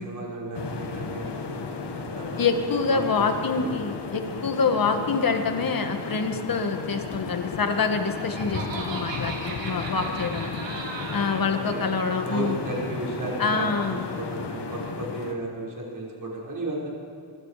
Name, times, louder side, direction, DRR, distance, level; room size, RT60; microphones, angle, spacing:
voice 1, 0.0-2.5 2.9-3.7 11.5-16.9, right 2 dB, 45° right, -4 dB, 6.0 m, -34 dB
sound 1, 0.5-15.3, left 4 dB, 65° left, 1.9 m, -34 dB
voice 2, 2.4-10.5 11.1-12.6 13.4-14.0, left 4 dB, 50° left, 5 dB, 1.9 m, -26 dB
Laughter, 7.7-11.5, right 3 dB, 85° right, 4.3 m, -36 dB
24.0 x 22.5 x 5.1 m, 2.4 s
wide cardioid pair, 155°, 43 cm